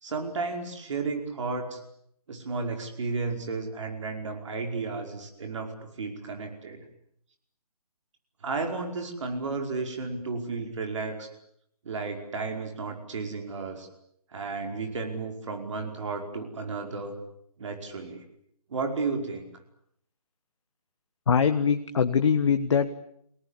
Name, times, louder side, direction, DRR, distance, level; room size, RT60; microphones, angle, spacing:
voice 1, 0.0-1.8 2.3-6.8 8.4-11.3 11.8-13.9 14.3-17.2 17.6-18.2 18.7-19.4, right 4 dB, 50° right, 4 dB, 5.1 m, -33 dB
voice 2, 21.3-22.9, left 6 dB, 50° left, 9 dB, 1.4 m, -22 dB
30.0 x 18.0 x 9.9 m, 0.72 s
figure-of-eight pair, 155°, 20 cm